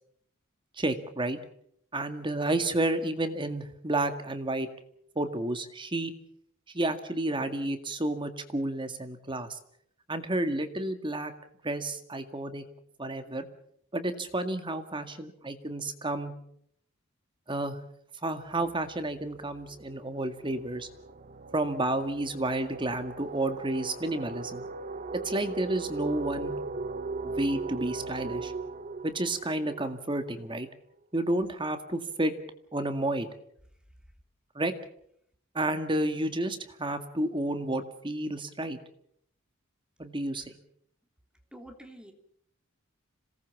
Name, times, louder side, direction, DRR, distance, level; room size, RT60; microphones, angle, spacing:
voice 1, 0.8-1.4 1.9-4.7 5.2-6.1 6.7-9.6 10.1-11.3 11.6-12.6 13.0-13.5 13.9-16.3 17.5-17.8 18.2-20.9 21.5-24.6 25.2-26.6 27.2-28.5 29.0-30.7 31.1-32.3 32.7-33.3 34.6-34.7 35.5-38.8 40.0-40.5, right 1 dB, 25° right, 8 dB, 2.0 m, -31 dB
sound 1, 19.1-30.7, right 3 dB, 40° right, 1.2 m, -38 dB
voice 2, 41.5-42.1, right 1 dB, 5° right, 4 dB, 3.1 m, -47 dB
26.5 x 18.5 x 7.2 m, 0.70 s
head